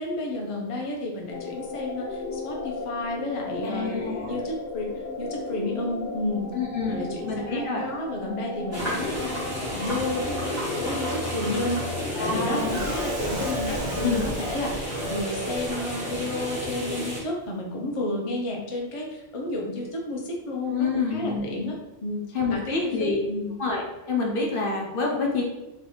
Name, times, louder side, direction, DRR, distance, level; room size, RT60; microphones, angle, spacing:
voice 1, 0.0-4.0 4.3-6.5 6.9-11.8 12.2-21.7 22.0-23.5, left 1 dB, 35° left, -1 dB, 0.7 m, -31 dB
sound 1, 1.3-13.8, left 3 dB, 90° left, 1.0 m, -35 dB
voice 2, 3.6-4.3 6.5-7.8 8.3-8.4 12.1-12.7 14.0-14.3 20.7-21.4 22.3-23.2 23.6-25.4, left 4 dB, 60° left, 0 dB, 0.9 m, -27 dB
sound 2, 8.7-17.2, equal, 15° right, 1.3 m, -32 dB
sound 3, 12.5-15.7 16.0-16.1 16.5-16.6, right 1 dB, 50° right, 1.0 m, -34 dB
3.2 x 3.1 x 4.2 m, 1.0 s
omnidirectional pair, 1.1 m